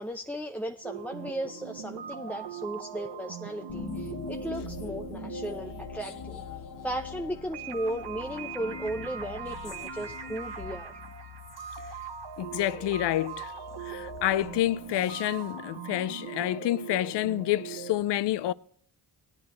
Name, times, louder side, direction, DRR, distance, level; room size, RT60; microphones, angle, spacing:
voice 1, 0.0-6.4 6.8-11.0, right 1 dB, 5° left, 0.6 m, -36 dB
sound 1, 0.8-18.0, right 7 dB, 70° right, 1.4 m, -41 dB
sound 2, 3.7-15.3, left 6 dB, 50° left, 0.9 m, -43 dB
voice 2, 12.4-13.5 13.8-18.5, left 14 dB, 75° left, 0.5 m, -28 dB
18.0 x 9.7 x 3.1 m
cardioid pair, 70°, 42 cm